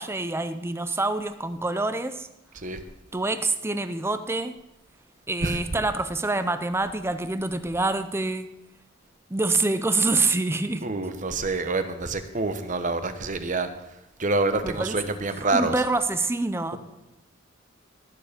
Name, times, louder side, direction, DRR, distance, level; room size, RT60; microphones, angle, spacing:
voice 1, 0.0-2.3 3.1-4.6 5.3-8.6 9.3-10.9 14.6-15.0 15.5-16.8, right 3 dB, 15° right, 11 dB, 0.6 m, -26 dB
voice 2, 5.4-5.8 10.8-13.7 14.2-15.7, right 3 dB, 40° right, 9 dB, 1.0 m, -27 dB
18.5 x 7.2 x 5.1 m, 0.92 s
head